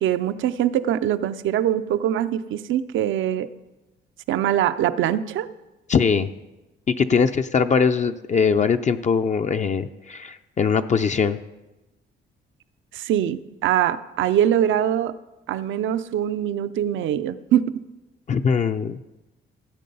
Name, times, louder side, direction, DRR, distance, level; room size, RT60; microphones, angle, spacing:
voice 1, 0.0-3.5 4.3-5.5 12.9-15.1 15.5-17.8, right 10 dB, 75° right, 13 dB, 0.6 m, -23 dB
voice 2, 5.9-6.3 6.9-11.4 18.3-19.1, left 6 dB, 35° left, 8 dB, 0.5 m, -21 dB
15.0 x 7.6 x 5.4 m, 1.1 s
cardioid pair, 90°, 20 cm